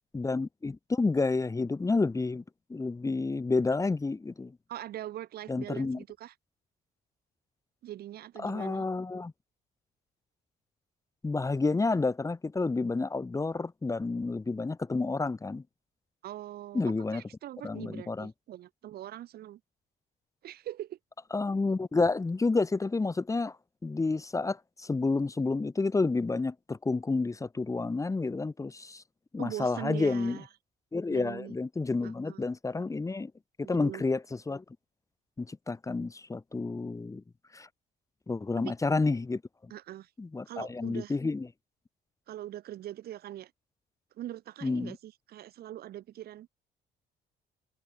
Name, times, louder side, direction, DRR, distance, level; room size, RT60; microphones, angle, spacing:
voice 1, 0.1-2.4 2.7-4.6 5.5-6.0 8.4-9.3 11.2-15.6 16.7-17.2 17.6-18.3 21.3-23.6 23.8-29.0 29.3-30.4 30.9-33.3 33.6-34.6 35.4-37.2 37.5-37.7 38.3-39.7 40.2-41.5 44.6-45.0, left 3 dB, 20° left, 2.9 m, -30 dB
voice 2, 4.7-6.3 7.8-8.9 16.2-16.8 17.1-19.6 20.4-21.0 29.4-30.5 31.1-31.5 32.0-32.5 33.6-34.1 38.6-38.7 39.7-40.1 40.5-41.1 42.3-43.5 44.2-46.5, right 13 dB, 65° right, 4.8 m, -42 dB
cardioid pair, 110°, 17 cm